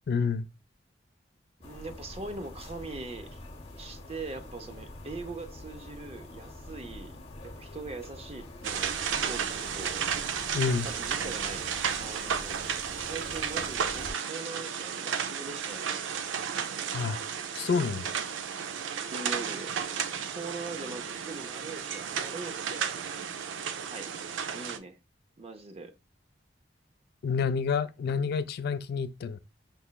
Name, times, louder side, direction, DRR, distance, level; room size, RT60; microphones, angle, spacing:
voice 1, 0.1-0.5 10.5-10.9 16.9-17.2 17.5-18.1 27.2-29.4, left 5 dB, 60° left, 0.3 m, -28 dB
sound 1, 1.6-14.1, left 1 dB, 35° left, 0.8 m, -45 dB
voice 2, 1.6-3.4 3.7-7.2 7.4-10.0 10.8-11.7 12.0-12.7 13.0-16.1 19.1-19.7 20.3-23.4 23.8-24.1 24.5-25.0 25.4-25.9, right 3 dB, 35° right, 0.5 m, -42 dB
sound 2, 8.6-24.8, right 7 dB, 90° right, 0.4 m, -33 dB
5.3 x 3.0 x 2.2 m
head